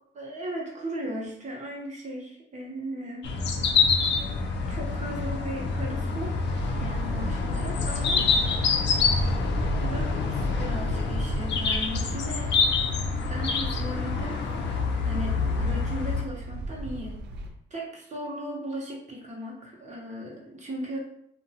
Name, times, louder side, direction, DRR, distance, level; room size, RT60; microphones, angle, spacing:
voice 1, 0.1-3.3 4.2-4.3 4.7-9.0 9.8-12.7 13.3-14.6 15.0-17.2 17.7-21.0, equal, 35° right, -2 dB, 0.9 m, -37 dB
sound 1, 3.2-16.2, left 5 dB, 65° left, 0.4 m, -26 dB
Wind instrument woodwind instrument, 4.0-9.2, left 3 dB, 5° left, 0.7 m, -52 dB
sound 2, 6.6-17.5, right 2 dB, 60° right, 0.4 m, -36 dB
2.6 x 2.2 x 2.8 m, 0.73 s
cardioid pair, 90°, 20 cm